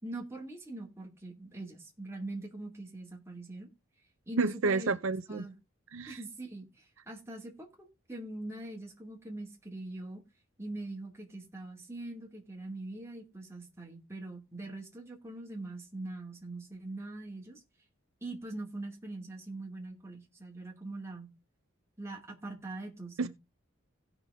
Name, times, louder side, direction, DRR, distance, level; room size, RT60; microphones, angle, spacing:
voice 1, 0.0-3.7 4.3-5.0 5.3-5.5 6.1-10.2 10.6-17.6 18.2-21.3 22.0-23.3, right 2 dB, 10° right, 2.5 m, -43 dB
voice 2, 4.4-5.4 5.9-6.2 23.2-23.3, right 3 dB, 70° right, 0.6 m, -30 dB
17.0 x 6.1 x 3.6 m
head